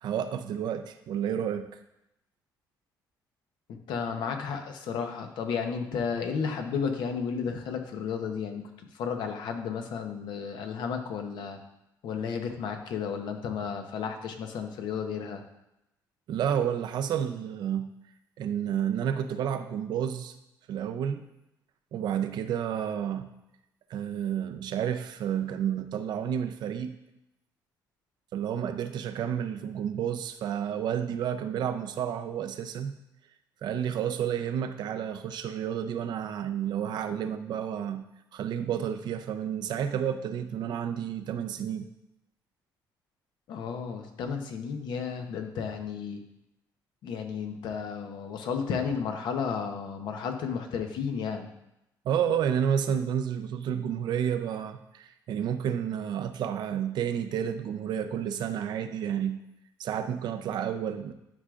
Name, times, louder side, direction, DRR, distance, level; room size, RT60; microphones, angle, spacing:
voice 1, 0.0-1.7 16.3-17.9 18.4-20.3 20.7-21.2 21.9-23.3 23.9-27.0 28.3-32.9 33.6-38.0 38.3-41.9 52.0-59.4 59.8-61.1, right 9 dB, 70° right, 9 dB, 0.6 m, -30 dB
voice 2, 3.7-11.6 12.0-15.4 43.5-46.2 47.0-51.5, left 6 dB, 75° left, 5 dB, 0.9 m, -33 dB
11.0 x 4.9 x 2.5 m, 0.87 s
cardioid pair, 90°, 8 cm